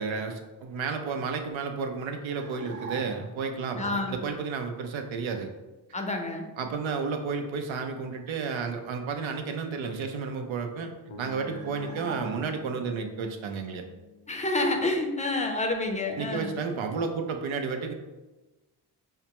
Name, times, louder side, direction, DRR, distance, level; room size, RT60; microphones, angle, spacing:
voice 1, 0.0-5.5 6.6-10.9 11.2-13.8 16.2-17.9, right 5 dB, 70° right, 5 dB, 0.6 m, -32 dB
sound 1, 2.3-3.5 11.5-12.8, right 3 dB, 20° right, 1.0 m, -42 dB
voice 2, 3.8-4.2 5.9-6.5 14.3-16.6, left 2 dB, 15° left, 3 dB, 0.5 m, -28 dB
sound 2, 11.1-15.3, left 5 dB, 85° left, 0.7 m, -48 dB
4.8 x 2.2 x 2.9 m, 1.1 s
cardioid pair, 60°, 48 cm